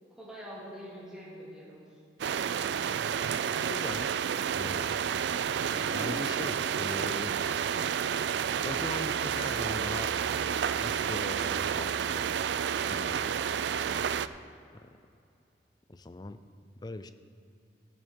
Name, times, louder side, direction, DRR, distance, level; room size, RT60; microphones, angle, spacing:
voice 1, 0.1-2.0 5.6-6.2, equal, 5° right, -8 dB, 2.6 m, -43 dB
sound 1, 2.2-14.3, right 8 dB, 70° right, 0.3 m, -30 dB
voice 2, 3.6-4.1 4.5-5.0 5.9-7.5 8.6-10.1 10.8-12.3 12.9-13.6 14.7-14.9 15.9-17.1, left 2 dB, 20° left, 11 dB, 0.4 m, -41 dB
14.0 x 8.4 x 4.6 m, 2.6 s
head